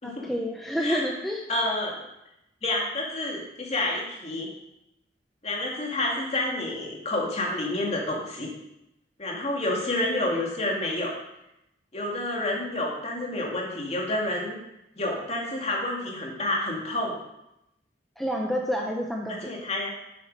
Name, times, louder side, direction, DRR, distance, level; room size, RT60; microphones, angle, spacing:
voice 1, 0.0-1.4 18.2-19.5, equal, ahead, -1 dB, 0.8 m, -29 dB
voice 2, 1.5-2.0 2.6-4.5 5.4-8.5 9.2-11.1 11.9-14.6 15.0-17.2 19.3-19.9, left 1 dB, 35° left, -1 dB, 2.4 m, -29 dB
8.6 x 8.4 x 5.3 m, 0.87 s
head